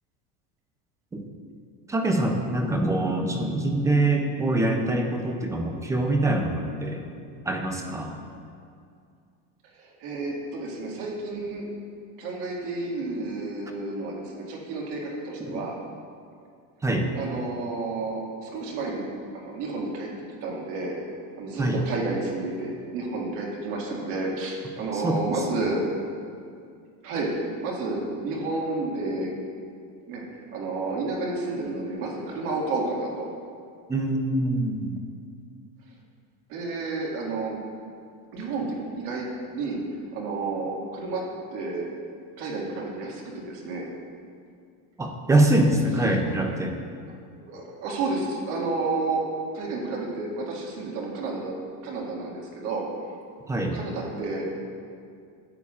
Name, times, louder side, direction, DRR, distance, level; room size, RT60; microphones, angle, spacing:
voice 1, 1.9-7.0 7.4-8.2 15.4-15.6 16.8-17.1 21.6-21.8 24.9-25.4 33.9-35.0 45.0-46.8 53.5-53.8, right 1 dB, 10° right, 3 dB, 0.3 m, -24 dB
voice 2, 9.8-11.7 12.2-15.7 17.1-20.1 20.4-21.0 21.4-25.9 27.0-29.3 30.1-30.2 30.5-33.3 36.5-37.6 38.3-39.8 40.1-41.2 41.5-41.9 42.4-43.9 47.4-49.3 49.5-51.5 51.8-52.9 53.7-54.5, right 3 dB, 65° right, -2 dB, 2.0 m, -31 dB
13.0 x 8.1 x 2.4 m, 2.3 s
cardioid pair, 155°, 38 cm